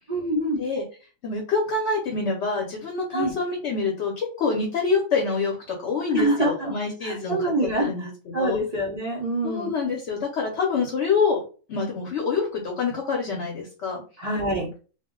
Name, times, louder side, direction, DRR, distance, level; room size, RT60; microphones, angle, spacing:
voice 1, 0.1-0.6 3.1-3.3 6.1-6.7 7.0-9.7 14.2-14.8, right 1 dB, 55° right, -2 dB, 0.4 m, -26 dB
voice 2, 1.2-8.6 9.4-11.4 11.7-14.0, left 4 dB, 60° left, 0 dB, 0.8 m, -26 dB
2.4 x 2.1 x 3.6 m, 0.37 s
omnidirectional pair, 1.5 m